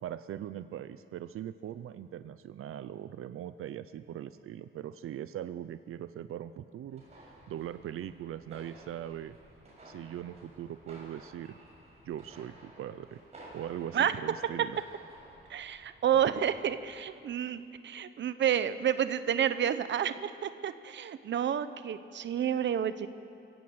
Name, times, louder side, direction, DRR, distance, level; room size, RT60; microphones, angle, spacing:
voice 1, 0.0-9.4 9.8-11.6 12.0-13.2 13.5-14.8, right 11 dB, 90° right, 12 dB, 0.6 m, -41 dB
sound 1, 6.9-16.9, right 1 dB, 30° right, 6.7 m, -54 dB
voice 2, 15.5-23.1, right 9 dB, 60° right, 12 dB, 0.9 m, -30 dB
28.5 x 16.0 x 7.8 m, 2.6 s
wide cardioid pair, 175°, 21 cm